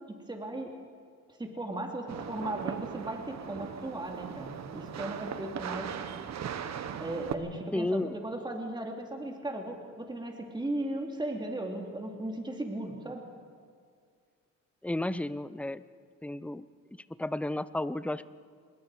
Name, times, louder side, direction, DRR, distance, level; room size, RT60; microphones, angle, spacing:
voice 1, 0.3-0.7 1.4-5.9 7.0-13.2, right 1 dB, 15° right, 1 dB, 2.9 m, -36 dB
sound 1, 2.1-7.3, right 8 dB, 65° right, 1.4 m, -38 dB
voice 2, 7.7-8.2 14.8-15.8 16.2-16.7 16.9-18.3, left 1 dB, 5° left, 15 dB, 0.7 m, -32 dB
26.5 x 21.5 x 5.0 m, 2.1 s
cardioid pair, 90°, 30 cm